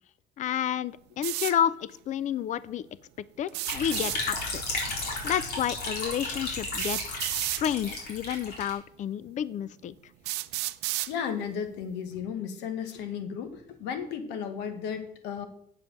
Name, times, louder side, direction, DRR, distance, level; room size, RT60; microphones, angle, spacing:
voice 1, 0.4-2.9 3.4-4.6 5.2-9.9, left 10 dB, 45° left, 19 dB, 0.4 m, -30 dB
sound 1, 1.2-1.6 3.5-4.2 5.6-5.7 6.8-7.6 8.6-8.7 9.4-9.5 10.3-11.1, right 17 dB, 85° right, 0.5 m, -31 dB
sound 2, 3.7-8.7, left 2 dB, 70° left, 3.9 m, -34 dB
voice 2, 11.1-15.5, left 7 dB, 90° left, 8 dB, 1.3 m, -34 dB
8.4 x 5.1 x 7.3 m, 0.67 s
cardioid pair, 110°, 17 cm